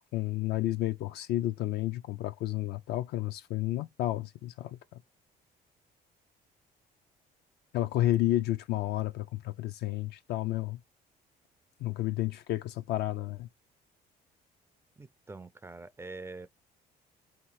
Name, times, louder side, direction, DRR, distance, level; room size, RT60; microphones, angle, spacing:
voice 1, 0.1-4.8 7.7-10.8 11.8-13.5, left 15 dB, 75° left, 0.5 m, -31 dB
voice 2, 15.0-16.5, right 3 dB, 15° right, 0.3 m, -44 dB
3.3 x 2.9 x 4.6 m
cardioid pair, 110°, 17 cm